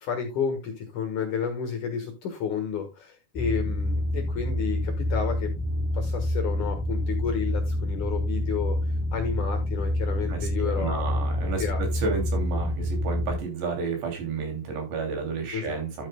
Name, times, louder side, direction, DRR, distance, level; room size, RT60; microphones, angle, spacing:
voice 1, 0.0-8.8 9.1-11.0 11.6-12.1 15.5-15.8, left 7 dB, 60° left, 2.2 m, -31 dB
sound 1, 3.3-13.4, left 1 dB, 10° left, 2.7 m, -27 dB
voice 2, 10.3-16.1, right 5 dB, 75° right, 4.9 m, -31 dB
12.0 x 8.9 x 2.2 m
omnidirectional pair, 5.0 m